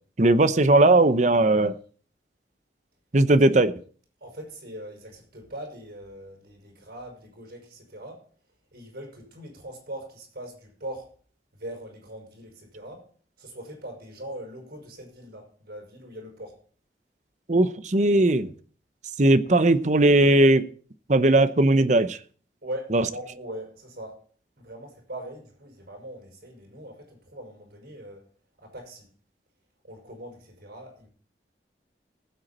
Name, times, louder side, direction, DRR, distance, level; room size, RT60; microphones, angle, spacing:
voice 1, 0.2-1.8 3.1-3.7 17.5-18.5 19.2-20.7 21.1-22.2 22.9-23.0, right 2 dB, 40° right, 0.8 m, -18 dB
voice 2, 4.2-8.2 8.7-11.1 11.5-13.1 13.4-16.6 22.6-24.2 24.6-28.3 28.6-29.1 29.8-31.1, right 1 dB, 55° right, 5.9 m, -41 dB
18.5 x 8.0 x 4.3 m
head